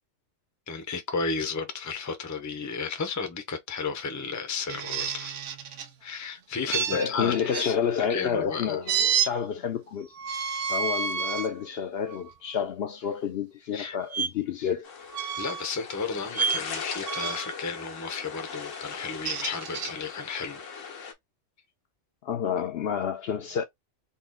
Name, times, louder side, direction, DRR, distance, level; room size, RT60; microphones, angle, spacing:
voice 1, 0.7-5.4 6.0-7.8 8.1-9.2 13.7-14.0 15.3-20.6, left 5 dB, 20° left, 0.5 m, -33 dB
sound 1, 4.7-5.9 6.7-7.7 8.9-9.3 10.1-11.5 12.1-12.3 14.1-14.3 15.1-15.7 16.3-16.6 17.1-17.6 19.0-19.9, right 7 dB, 75° right, 1.0 m, -29 dB
voice 2, 6.7-8.8 9.2-10.1 10.7-14.9 22.2-23.6, left 7 dB, 65° left, 0.7 m, -29 dB
sound 2, 14.8-21.1, left 5 dB, 85° left, 1.4 m, -39 dB
4.0 x 2.4 x 3.6 m
omnidirectional pair, 1.3 m